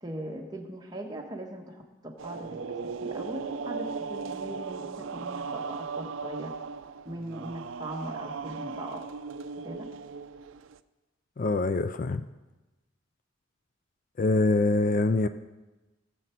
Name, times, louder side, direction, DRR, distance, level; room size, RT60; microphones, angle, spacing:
voice 1, 0.0-2.7 3.0-6.5 7.0-9.0 9.6-9.8, right 1 dB, 20° right, 1 dB, 1.3 m, -40 dB
sound 1, 2.2-10.8, right 5 dB, 85° right, 0.4 m, -37 dB
voice 2, 11.4-12.2 14.2-15.3, left 2 dB, 45° left, 11 dB, 0.4 m, -24 dB
18.0 x 7.0 x 4.5 m, 1.1 s
head